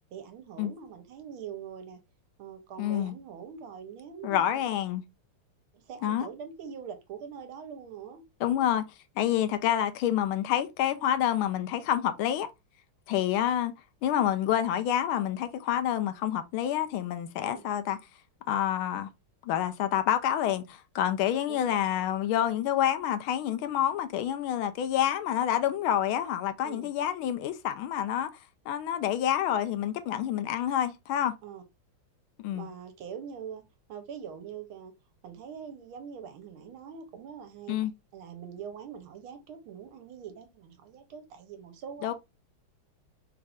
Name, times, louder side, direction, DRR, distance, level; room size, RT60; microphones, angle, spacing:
voice 1, 0.1-2.0 2.4-4.6 5.7-8.2 9.4-9.6 13.1-13.3 17.5-17.7 21.5-21.7 26.6-26.9 31.4-31.6 32.5-33.6 33.9-34.9 35.2-37.8 38.1-42.1, right 7 dB, 75° right, 1.7 m, -43 dB
voice 2, 2.8-3.1 4.2-5.0 6.0-6.3 8.4-8.8 9.2-12.5 13.1-13.7 14.0-18.0 18.5-19.1 19.4-28.3 28.7-31.3 32.4-32.7 37.7-37.9 42.0-42.1, left 11 dB, 80° left, 1.4 m, -28 dB
4.3 x 2.4 x 3.4 m
omnidirectional pair, 2.4 m